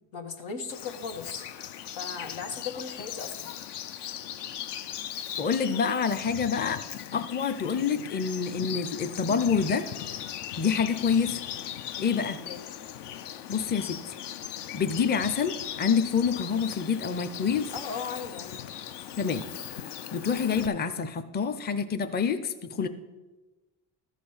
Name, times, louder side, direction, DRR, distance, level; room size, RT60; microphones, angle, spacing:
voice 1, 0.1-1.5 2.0-3.5 12.0-12.6 17.7-18.7, left 5 dB, 85° left, 3 dB, 1.4 m, -38 dB
Bird vocalization bird call bird song, 0.7-20.7, left 10 dB, 70° left, 0.6 m, -39 dB
voice 2, 5.4-6.8 7.1-9.9 10.6-11.4 12.0-12.4 13.5-14.0 14.7-17.7 19.2-19.4 20.1-22.9, left 6 dB, 25° left, 9 dB, 0.6 m, -27 dB
13.0 x 5.0 x 5.5 m, 1.2 s
cardioid pair, 85°, 44 cm